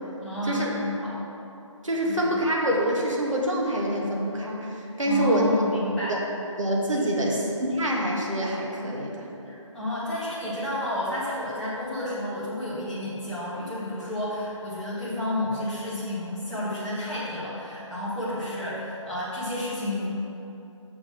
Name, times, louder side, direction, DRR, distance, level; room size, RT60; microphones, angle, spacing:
voice 1, 0.2-1.2 2.0-2.4 5.0-6.1 7.0-7.4 9.5-20.1, left 1 dB, ahead, -12 dB, 0.4 m, -31 dB
voice 2, 1.8-5.5 6.1-6.2 6.6-9.3, right 1 dB, 75° right, -2 dB, 1.7 m, -26 dB
6.4 x 5.8 x 5.5 m, 2.9 s
figure-of-eight pair, 150°, 17 cm